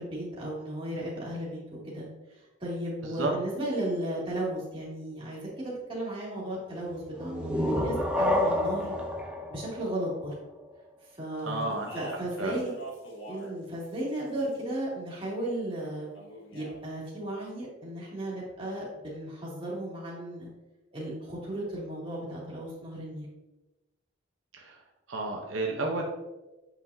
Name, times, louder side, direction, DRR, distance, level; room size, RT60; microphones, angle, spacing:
voice 1, 0.0-2.1 2.6-8.9 9.5-10.3 11.2-12.7 13.3-16.1 16.5-20.5 20.9-23.3, right 1 dB, 25° right, -6 dB, 2.4 m, -35 dB
sound 1, 7.2-10.8, left 1 dB, 5° right, 0.6 m, -29 dB
voice 2, 11.4-11.9 12.4-12.6 24.6-24.8 25.1-26.0, right 2 dB, 85° right, 1 dB, 1.0 m, -31 dB
Speech, 11.6-13.6 13.8-14.7 16.1-16.8, right 1 dB, 75° left, 1.6 m, -44 dB
8.2 x 5.8 x 2.8 m, 1.0 s
head